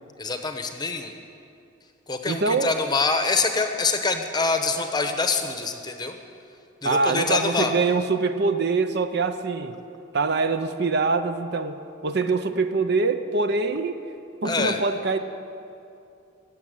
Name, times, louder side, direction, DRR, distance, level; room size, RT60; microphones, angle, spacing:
voice 1, 0.2-1.1 2.1-6.1 6.8-7.7 14.4-14.8, left 4 dB, 20° left, 6 dB, 0.8 m, -25 dB
voice 2, 2.3-2.7 6.8-9.8 10.1-14.0 14.4-15.2, right 4 dB, 55° right, 9 dB, 0.6 m, -24 dB
17.0 x 7.3 x 9.3 m, 2.6 s
head